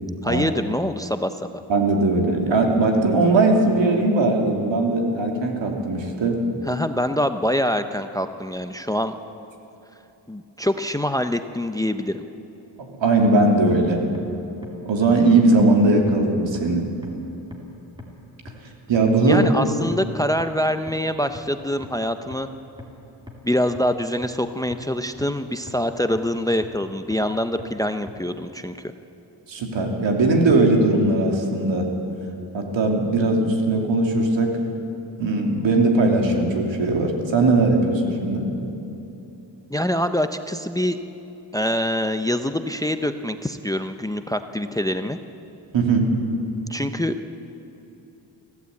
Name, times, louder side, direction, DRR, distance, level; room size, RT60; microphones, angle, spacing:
voice 1, 0.2-1.6 6.7-9.1 10.3-12.2 19.2-22.5 23.4-28.7 39.7-41.0 41.5-45.2 46.7-47.2, equal, 10° left, 9 dB, 0.6 m, -25 dB
voice 2, 1.7-6.4 12.8-14.1 14.8-16.9 18.9-19.4 29.5-31.9 32.5-34.5 35.2-38.5 45.7-46.1, right 2 dB, 80° right, 2 dB, 3.1 m, -19 dB
sound 1, 13.2-13.3 13.7-13.8 14.1-14.2 14.6-14.7 15.1-15.2 15.6-15.7 16.1-16.2 16.5-16.6 17.0-17.1 17.5-17.6 18.0-18.1 18.5-18.6 18.9-19.0 19.4-19.5 19.9-20.0 20.4-20.5 20.9-21.0 21.3-21.4 21.8-21.9 22.3-22.4 22.8-22.9 23.3-23.4 23.7-23.8 24.2-24.3 24.7-24.8 25.2-25.3 25.7-25.8 26.1-26.2 26.6-26.7 27.1-27.2 27.6-27.7 28.1-28.2, left 2 dB, 10° right, 2.7 m, -38 dB
24.5 x 15.5 x 8.4 m, 2.9 s
wide cardioid pair, 145°, 45 cm